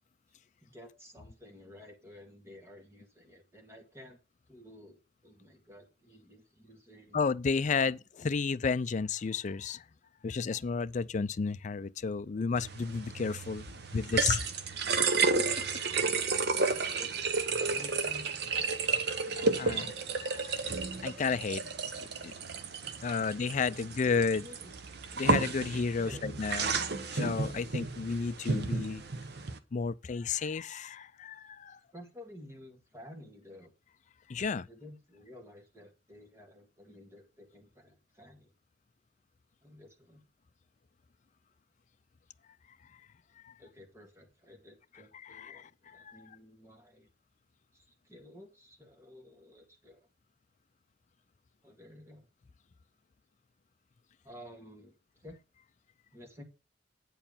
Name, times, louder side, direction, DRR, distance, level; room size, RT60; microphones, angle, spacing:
voice 1, 0.6-4.2 4.5-7.3 16.0-16.3 16.6-17.2 17.5-18.3 19.2-20.1 23.0-24.7 26.0-26.2 31.9-33.7 34.5-38.5 39.6-40.2 43.6-47.1 47.7-50.1 51.6-52.2 54.2-55.4 56.1-56.4, left 1 dB, 15° right, 2.3 m, -52 dB
voice 2, 7.1-9.8 10.2-13.6 13.9-14.5 19.1-19.9 20.2-20.6 21.0-21.6 22.2-22.3 23.0-24.4 25.2-26.8 27.1-29.0 29.7-31.8 34.3-34.7 43.4-43.5 45.2-46.2, left 5 dB, 40° left, 0.4 m, -32 dB
sound 1, 12.6-29.6, right 4 dB, 60° right, 0.9 m, -32 dB
8.8 x 4.7 x 7.1 m
head